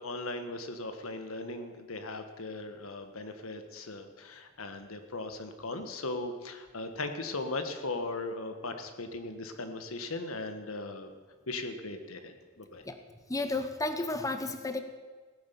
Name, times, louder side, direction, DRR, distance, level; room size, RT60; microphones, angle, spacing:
voice 1, 0.0-11.1 11.5-12.8, left 2 dB, 80° left, 8 dB, 1.5 m, -38 dB
voice 2, 13.3-14.8, left 2 dB, 15° left, 8 dB, 0.8 m, -32 dB
16.5 x 9.7 x 7.0 m, 1.4 s
head